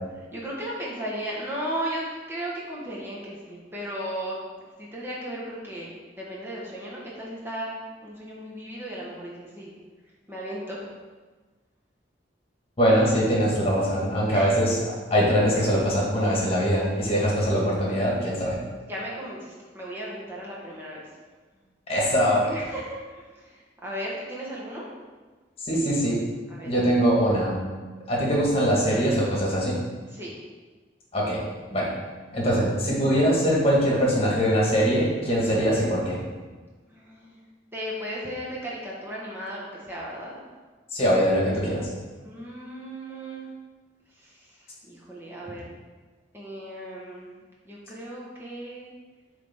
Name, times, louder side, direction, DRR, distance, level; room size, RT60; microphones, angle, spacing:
voice 1, 0.3-9.7 10.3-10.9 14.3-14.6 18.9-21.2 22.4-24.9 26.5-27.2 30.1-30.4 36.9-37.4 37.7-40.4 42.2-43.5 44.2-45.7 46.3-47.3 47.6-48.9, equal, 10° right, -6 dB, 1.1 m, -36 dB
voice 2, 12.8-14.8 15.1-18.6 21.9-22.4 25.6-26.2 26.6-27.6 28.1-29.8 31.1-31.4 31.7-31.9 32.3-36.2 40.9-41.9, equal, 30° left, -4 dB, 1.6 m, -22 dB
8.2 x 3.4 x 3.6 m, 1.4 s
head